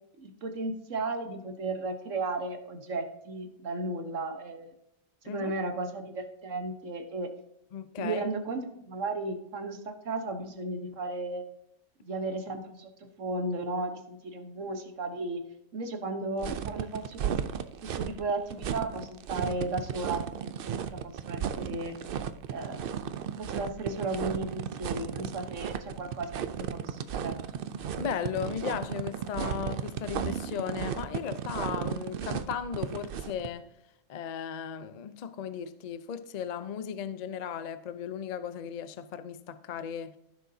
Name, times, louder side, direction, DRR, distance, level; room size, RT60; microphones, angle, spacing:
voice 1, 0.2-4.7 5.2-7.3 8.0-11.4 12.1-15.4 15.7-17.3 17.8-21.9 22.5-22.9 23.4-26.3 26.6-27.4, right 2 dB, 55° right, 1.4 m, -35 dB
voice 2, 7.7-8.3 28.0-33.7 34.1-40.2, left 8 dB, 80° left, 0.3 m, -36 dB
sound 1, 16.4-33.5, right 8 dB, 85° right, 0.4 m, -34 dB
15.0 x 6.5 x 2.7 m
omnidirectional pair, 1.6 m